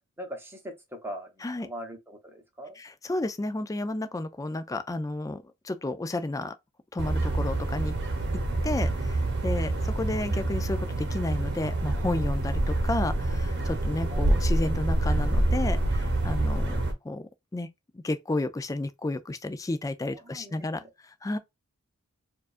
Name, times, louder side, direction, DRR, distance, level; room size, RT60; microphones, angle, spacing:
voice 1, 0.2-2.8 14.1-14.3 20.1-20.9, equal, 10° right, 0.9 m, -41 dB
voice 2, 2.8-6.5 6.9-7.9 8.6-16.8 17.0-17.7 18.0-20.8 21.2-21.4, left 2 dB, 15° left, 0.3 m, -32 dB
sound 1, 7.0-16.9, right 1 dB, 50° right, 0.9 m, -27 dB
4.5 x 2.4 x 2.4 m
head